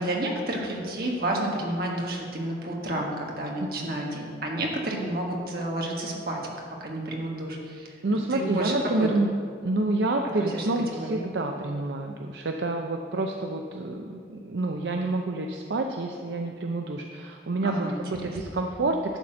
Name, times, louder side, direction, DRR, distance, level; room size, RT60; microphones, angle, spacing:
voice 1, 0.0-6.4 6.8-8.0 8.3-9.1 10.4-10.7 11.0-11.2 17.6-18.4, right 1 dB, 55° right, -1 dB, 1.5 m, -30 dB
voice 2, 8.0-9.3 9.6-17.9 18.2-19.0, right 2 dB, 75° right, 3 dB, 0.5 m, -28 dB
11.5 x 4.2 x 7.6 m, 2.2 s
head